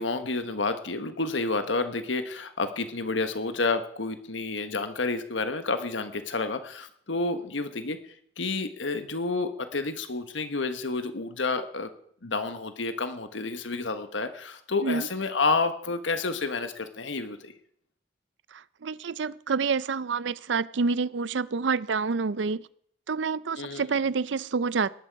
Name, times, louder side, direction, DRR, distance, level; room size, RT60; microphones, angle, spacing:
voice 1, 0.0-8.0 8.4-11.9 12.2-17.5 23.6-23.8, left 3 dB, 85° left, 9 dB, 1.4 m, -30 dB
voice 2, 18.5-22.7 23.1-24.9, right 5 dB, 75° right, 19 dB, 0.5 m, -28 dB
18.5 x 11.5 x 4.8 m, 0.67 s
head